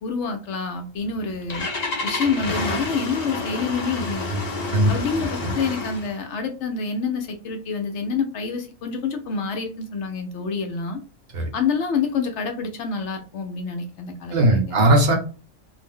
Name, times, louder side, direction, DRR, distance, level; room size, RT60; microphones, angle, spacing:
voice 1, 0.0-1.7 2.0-4.3 4.9-11.0 11.5-14.8, left 5 dB, 70° left, 5 dB, 0.8 m, -27 dB
Engine starting, 1.0-6.2, left 2 dB, 45° left, 0.6 m, -29 dB
voice 2, 14.3-15.2, right 1 dB, 55° right, 2 dB, 0.8 m, -18 dB
2.5 x 2.0 x 3.5 m, 0.35 s
omnidirectional pair, 1.3 m